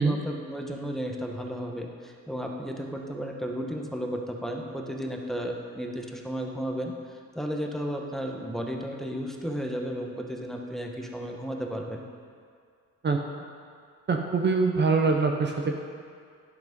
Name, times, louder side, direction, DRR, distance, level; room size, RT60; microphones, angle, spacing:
voice 1, 0.0-12.0, equal, ahead, 1 dB, 1.1 m, -34 dB
voice 2, 14.1-15.7, right 4 dB, 35° right, 2 dB, 0.8 m, -24 dB
10.5 x 6.0 x 5.3 m, 2.2 s
cardioid pair, 90°, 30 cm